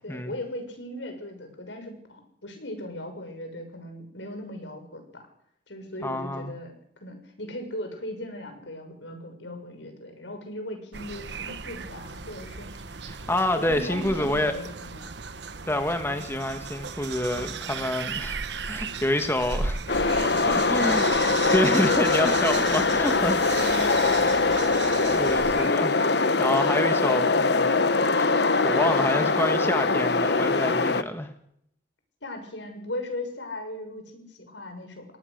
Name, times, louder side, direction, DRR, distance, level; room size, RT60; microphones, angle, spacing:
voice 1, 0.0-5.3 5.7-6.7 7.0-12.8 13.5-15.1 16.1-16.3 20.5-21.2 23.4-24.3 25.5-25.7 32.2-35.0, left 1 dB, 85° left, 6 dB, 6.4 m, -38 dB
voice 2, 6.0-6.5 13.0-14.5 15.6-18.4 18.7-19.8 20.5-21.0 21.5-23.6 25.0-26.0 26.4-27.7 28.6-31.3, left 1 dB, 15° left, 7 dB, 1.6 m, -27 dB
sound 1, 10.9-25.7, right 5 dB, 70° right, 1.2 m, -36 dB
sound 2, 19.9-31.0, left 3 dB, 65° left, 1.2 m, -22 dB
23.5 x 19.0 x 6.6 m, 0.72 s
head